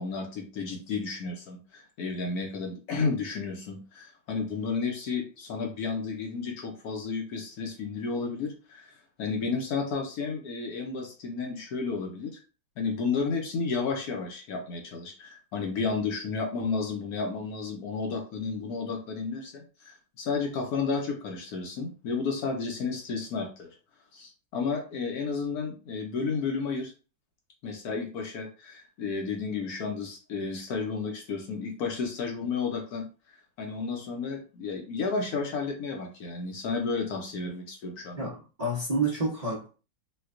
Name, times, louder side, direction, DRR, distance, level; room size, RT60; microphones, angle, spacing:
voice 1, 0.0-8.9 9.2-12.4 12.8-23.7 24.1-26.9 27.6-33.0 33.6-38.3, left 4 dB, 65° left, 2 dB, 1.0 m, -32 dB
voice 2, 38.2-39.7, right 2 dB, 70° right, -6 dB, 0.3 m, -29 dB
4.3 x 2.2 x 2.4 m, 0.35 s
omnidirectional pair, 2.0 m